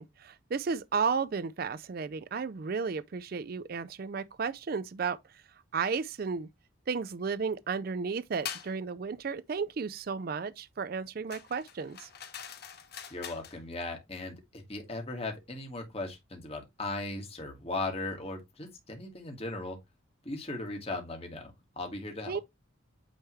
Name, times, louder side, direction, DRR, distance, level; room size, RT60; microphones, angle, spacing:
voice 1, 0.0-5.2 5.7-6.5 6.9-12.1 22.3-22.4, right 5 dB, 45° right, 0.4 m, -33 dB
sound 1, 8.4-8.7 11.3-13.6, left 8 dB, 50° left, 1.0 m, -43 dB
voice 2, 13.1-19.8 20.3-22.4, left 2 dB, 30° left, 1.7 m, -38 dB
8.9 x 3.4 x 3.1 m
head